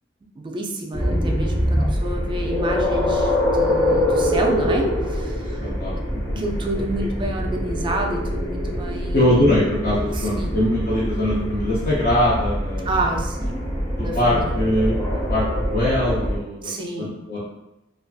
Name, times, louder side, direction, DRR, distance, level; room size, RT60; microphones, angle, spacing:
voice 1, 0.4-5.7 6.4-9.3 10.1-10.6 12.8-13.6 14.0-14.7 16.6-17.1, right 1 dB, 25° right, 2 dB, 0.3 m, -29 dB
sound 1, 0.9-16.4, equal, 15° left, 0.8 m, -24 dB
voice 2, 3.7-4.0 5.6-6.4 7.0-7.1 9.1-12.9 14.0-15.0 15.3-16.7 17.0-17.4, left 1 dB, 50° left, -8 dB, 0.6 m, -22 dB
2.5 x 2.3 x 2.3 m, 0.94 s
head